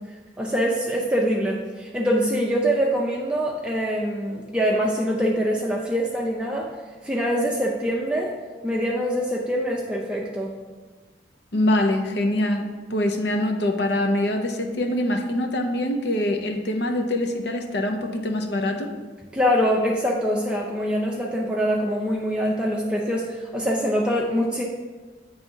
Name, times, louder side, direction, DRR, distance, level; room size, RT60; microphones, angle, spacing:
voice 1, 0.4-6.7 7.0-8.3 8.6-10.5 19.3-24.6, equal, 5° right, -2 dB, 0.5 m, -24 dB
voice 2, 11.5-18.9, left 1 dB, 70° left, 5 dB, 0.7 m, -24 dB
8.5 x 3.4 x 5.4 m, 1.4 s
head